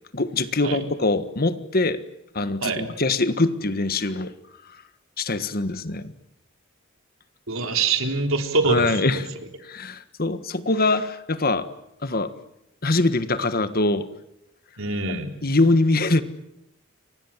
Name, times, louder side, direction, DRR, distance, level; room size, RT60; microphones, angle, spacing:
voice 1, 0.1-2.0 2.3-4.3 5.2-6.1 8.6-9.3 9.6-11.7 12.0-12.3 12.8-14.1 15.4-16.2, left 2 dB, 45° left, 12 dB, 1.5 m, -23 dB
voice 2, 7.5-8.9 14.8-15.3, right 3 dB, 75° right, 5 dB, 3.8 m, -24 dB
29.5 x 24.5 x 7.4 m, 0.84 s
head